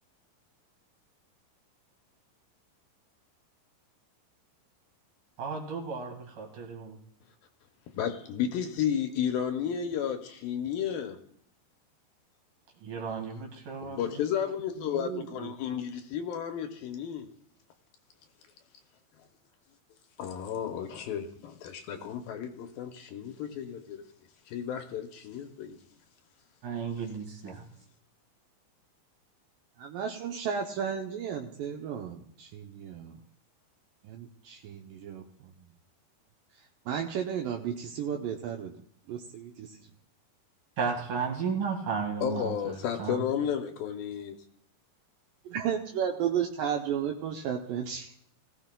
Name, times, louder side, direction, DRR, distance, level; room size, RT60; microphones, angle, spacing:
voice 1, 5.4-7.0 12.8-14.2 26.6-27.6 40.8-43.2, right 5 dB, 55° right, 3.1 m, -34 dB
voice 2, 7.9-11.2 13.8-17.3 20.2-24.1 24.5-25.8 42.2-44.4, left 8 dB, 80° left, 2.3 m, -33 dB
voice 3, 14.8-15.5 29.8-33.2 34.0-35.5 36.5-38.8 39.1-39.8 45.5-48.2, right 8 dB, 80° right, 2.1 m, -34 dB
19.5 x 15.0 x 2.2 m
omnidirectional pair, 4.6 m